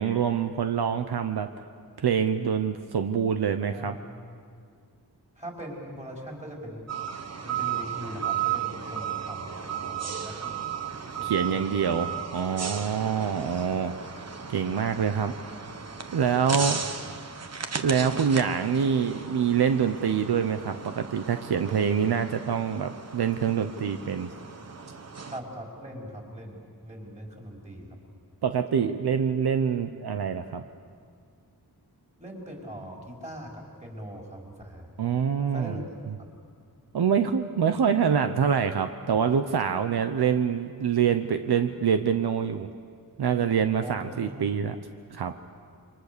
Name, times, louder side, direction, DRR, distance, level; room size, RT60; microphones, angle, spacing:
voice 1, 0.0-1.5 2.0-4.0 11.2-15.5 16.1-16.8 17.8-24.3 28.4-30.6 35.0-35.8 36.9-42.7 43.2-44.8 45.1-45.3, right 7 dB, 75° right, 8 dB, 1.0 m, -25 dB
voice 2, 3.6-4.1 5.4-6.8 7.4-10.7 11.1-12.9 16.6-16.9 25.3-28.0 32.2-34.9 35.5-35.8 36.2-36.3 43.8-44.5, equal, 20° right, -1 dB, 4.8 m, -41 dB
sound 1, 6.9-25.4, right 7 dB, 40° right, 1.3 m, -35 dB
28.0 x 25.0 x 6.9 m, 2.1 s
wide cardioid pair, 165°, 39 cm